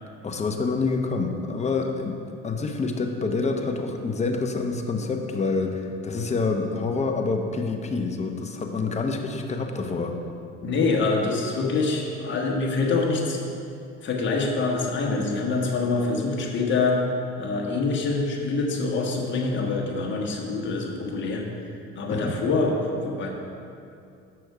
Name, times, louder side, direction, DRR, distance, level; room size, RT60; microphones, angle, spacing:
voice 1, 0.2-10.1 22.1-22.4, left 4 dB, 25° left, 4 dB, 0.8 m, -27 dB
voice 2, 10.6-13.4 14.0-17.0 17.4-21.4 21.9-23.3, left 3 dB, 40° left, -1 dB, 1.4 m, -25 dB
6.7 x 6.1 x 4.8 m, 2.5 s
supercardioid pair, 100°, 29 cm